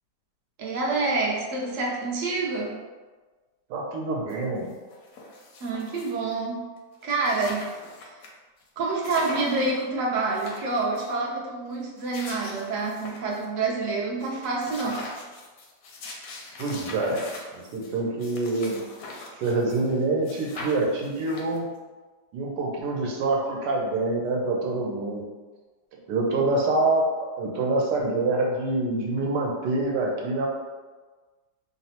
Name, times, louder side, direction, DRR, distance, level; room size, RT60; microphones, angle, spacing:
voice 1, 0.6-2.7 5.6-6.6 7.0-7.7 8.1-8.2 8.8-15.2 26.3-26.4, right 3 dB, 65° right, -3 dB, 0.8 m, -27 dB
voice 2, 3.7-4.7 16.6-17.2 17.7-18.8 19.4-21.7 22.3-25.2 26.1-30.5, right 2 dB, 85° right, -1 dB, 1.2 m, -26 dB
sound 1, 4.3-4.4 4.7-6.3 6.8-6.9 7.0-8.3 8.6-8.7 9.0-9.8 10.2-11.1 11.8-13.5 13.8-13.9 14.2-20.0 20.2-21.8, left 3 dB, 70° left, 0.8 m, -42 dB
3.2 x 2.0 x 2.8 m, 1.3 s
omnidirectional pair, 1.8 m